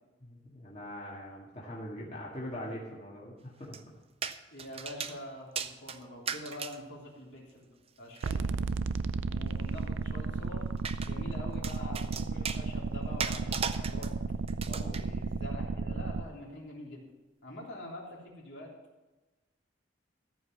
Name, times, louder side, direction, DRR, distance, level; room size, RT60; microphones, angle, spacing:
voice 1, 0.2-3.8 14.7-15.0, equal, 35° left, -6 dB, 2.0 m, -42 dB
sound 1, 3.7-3.8 4.2-5.2 5.6-6.8 8.2-8.4 10.8-11.1 11.6-12.6 13.2-14.1 14.5-15.0, right 7 dB, 30° right, 0.6 m, -36 dB
voice 2, 4.5-7.7 8.0-8.5 9.3-10.6 11.0-14.1 14.9-17.0 17.4-18.7, left 1 dB, 65° left, -3 dB, 3.3 m, -45 dB
sound 2, 8.2-16.2, right 4 dB, 85° right, 0.5 m, -33 dB
14.0 x 5.4 x 7.3 m, 1.1 s
head